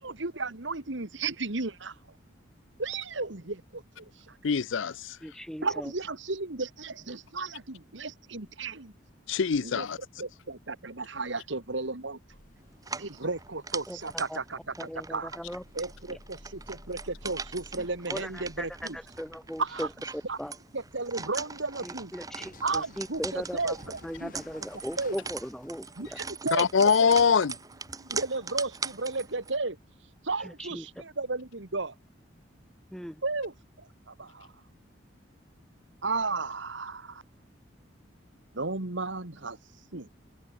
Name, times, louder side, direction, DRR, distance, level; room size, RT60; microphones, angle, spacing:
voice 1, 0.0-2.0 2.8-4.4 5.6-8.9 9.6-9.9 10.2-12.2 12.9-15.3 15.7-19.0 19.6-19.9 20.3-20.4 20.7-22.1 22.6-24.7 25.0-25.2 26.0-27.1 28.0-29.8 30.2-31.9 33.2-34.5 36.0-37.2 38.5-39.6 39.9-40.1, right 3 dB, 70° right, 1.9 m, -34 dB
voice 2, 4.4-5.2 9.3-10.0 26.5-27.5, left 6 dB, 75° left, 0.5 m, -23 dB
voice 3, 5.2-5.9 13.9-14.4 14.8-15.6 16.1-16.2 17.8-18.7 18.9-19.9 20.4-20.5 21.8-23.8 24.0-26.2 30.4-30.9 32.9-33.2, equal, 5° left, 3.1 m, -38 dB
sound 1, 12.3-26.3, left 1 dB, 45° left, 4.8 m, -55 dB
sound 2, 12.8-29.6, right 5 dB, 20° right, 1.2 m, -41 dB
sound 3, 23.8-25.8, equal, 40° right, 4.0 m, -57 dB
open air
head